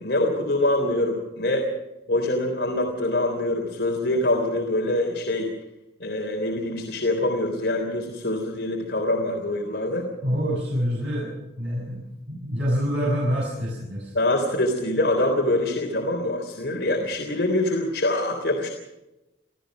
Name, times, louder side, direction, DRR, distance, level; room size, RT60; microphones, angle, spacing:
voice 1, 0.0-1.7 2.1-5.5 6.0-10.1 14.1-18.7, left 1 dB, 65° left, 1 dB, 3.6 m, -24 dB
voice 2, 10.2-14.1, equal, 85° right, -5 dB, 7.4 m, -26 dB
26.5 x 15.5 x 6.3 m, 0.97 s
head